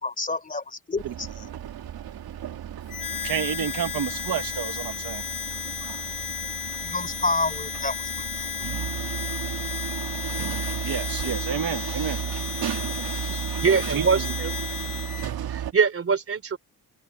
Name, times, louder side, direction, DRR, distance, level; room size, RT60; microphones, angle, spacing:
voice 1, 0.0-1.5 6.8-8.1 8.4-8.5, left 3 dB, 20° left, 3.6 m, -29 dB
sound 1, 1.0-15.7, right 10 dB, 90° right, 2.1 m, -34 dB
Harmonica, 2.9-15.3, left 8 dB, 55° left, 1.2 m, -34 dB
voice 2, 3.2-5.2 10.8-12.2 13.7-14.2, right 9 dB, 70° right, 1.5 m, -30 dB
voice 3, 13.6-14.5 15.5-16.6, right 5 dB, 40° right, 3.2 m, -23 dB
wide cardioid pair, 140°, 36 cm